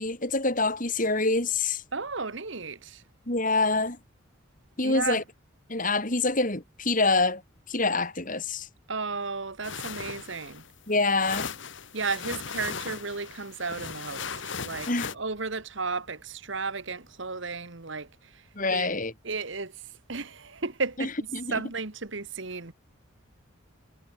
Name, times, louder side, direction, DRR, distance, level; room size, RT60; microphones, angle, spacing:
voice 1, 0.0-1.8 3.3-4.0 4.8-5.2 5.7-7.4 7.7-8.7 10.9-11.5 14.9-15.1 18.6-19.1 21.0-21.6, left 3 dB, 40° left, 3.8 m, -26 dB
voice 2, 1.9-3.0 4.8-5.2 8.9-10.6 11.9-18.4 18.7-18.9 19.2-19.8 20.1-22.7, right 4 dB, 60° right, 1.6 m, -34 dB
sound 1, 9.6-15.1, left 6 dB, 60° left, 1.7 m, -37 dB
head